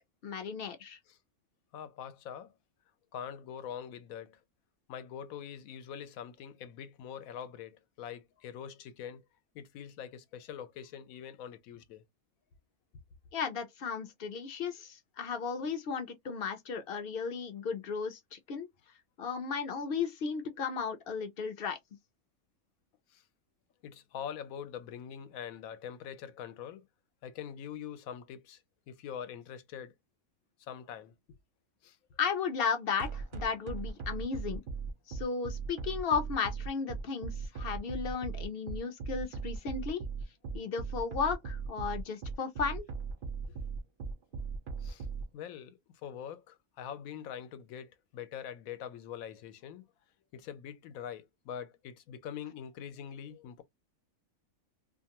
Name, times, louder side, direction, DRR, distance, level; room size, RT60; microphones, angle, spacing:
voice 1, 0.2-1.0 13.3-18.7 19.2-21.8 32.2-34.6 35.1-40.0 40.5-42.9, left 6 dB, 55° left, 0.6 m, -35 dB
voice 2, 1.7-2.5 3.1-4.4 4.9-9.2 9.5-12.0 23.1-23.2 23.8-26.9 27.2-29.9 30.6-31.1 31.8-32.0 44.8-45.1 45.3-49.9 50.3-53.6, left 8 dB, 85° left, 1.0 m, -44 dB
sound 1, 33.0-45.2, right 5 dB, 55° right, 0.6 m, -38 dB
2.5 x 2.3 x 2.8 m
omnidirectional pair, 1.4 m